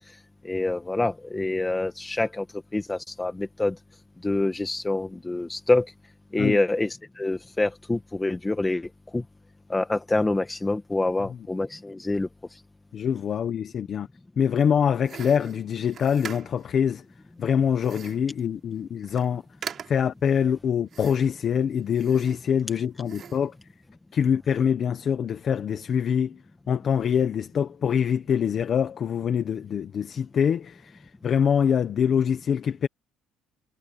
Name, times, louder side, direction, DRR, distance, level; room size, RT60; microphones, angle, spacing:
voice 1, 0.4-2.5 2.7-3.8 4.2-5.9 6.3-9.2 9.7-12.3, left 2 dB, 10° left, 1.9 m, -26 dB
voice 2, 12.9-14.1 14.4-17.0 17.4-19.4 19.9-23.5 24.1-26.4 26.7-32.9, left 7 dB, 40° left, 1.1 m, -24 dB
sound 1, 15.1-16.7 17.8-18.3 18.8-18.9 19.0-19.3 19.6-20.2 20.9-21.4 21.9-22.7 23.1-23.5, right 7 dB, 40° right, 3.0 m, -41 dB
cardioid pair, 145°, 0 cm